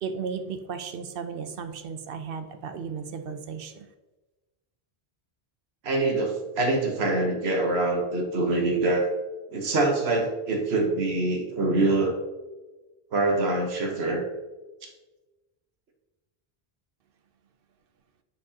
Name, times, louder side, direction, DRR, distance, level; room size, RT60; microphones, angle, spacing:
voice 1, 0.0-3.9, right 6 dB, 65° right, 8 dB, 0.8 m, -35 dB
voice 2, 5.8-9.1 9.5-12.2 13.1-14.3, right 2 dB, 90° right, 2 dB, 1.3 m, -25 dB
9.8 x 4.6 x 2.8 m, 1.1 s
omnidirectional pair, 1.0 m